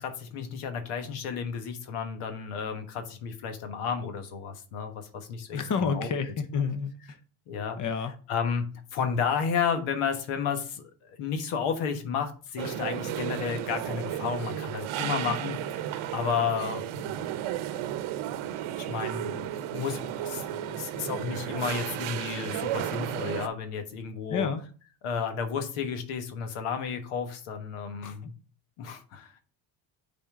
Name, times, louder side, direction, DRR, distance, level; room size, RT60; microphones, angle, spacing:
voice 1, 0.0-5.6 5.9-6.1 7.5-7.8 8.3-17.3 17.7-17.8 18.8-24.5 25.0-28.3 28.8-29.3, left 6 dB, 85° left, 1.4 m, -32 dB
voice 2, 5.5-7.2 7.8-8.1 24.3-24.6 28.0-28.2, left 5 dB, 40° left, 1.0 m, -29 dB
sound 1, 12.6-23.5, right 11 dB, 70° right, 0.8 m, -33 dB
8.8 x 4.2 x 3.7 m
cardioid pair, 90°, 49 cm